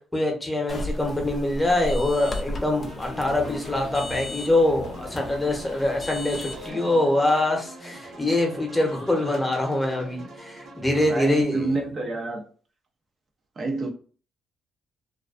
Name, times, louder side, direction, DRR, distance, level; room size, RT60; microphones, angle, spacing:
voice 1, 0.1-11.8, left 2 dB, 10° left, 0.8 m, -24 dB
sound 1, 0.7-6.7, left 1 dB, 40° left, 0.4 m, -35 dB
sound 2, 2.8-11.4, right 1 dB, 65° right, 1.0 m, -41 dB
voice 2, 11.1-12.4 13.6-13.9, right 3 dB, 50° right, 0.4 m, -28 dB
2.3 x 2.2 x 2.3 m
cardioid pair, 90°, 0 cm